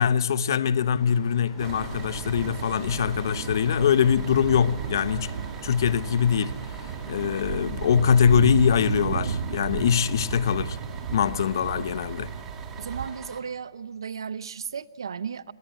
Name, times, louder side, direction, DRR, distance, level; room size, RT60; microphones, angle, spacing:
voice 1, 0.0-5.3 5.6-6.6 7.1-10.8 11.1-12.3, left 7 dB, 55° left, 0.9 m, -23 dB
sound 1, 0.7-12.0, left 2 dB, 10° left, 5.3 m, -47 dB
Bus, 1.6-13.4, right 4 dB, 15° right, 2.0 m, -45 dB
sound 2, 1.6-13.1, right 8 dB, 45° right, 1.2 m, -33 dB
voice 2, 12.8-15.5, right 6 dB, 75° right, 0.7 m, -35 dB
24.5 x 19.5 x 7.7 m
hypercardioid pair, 155°, 2 cm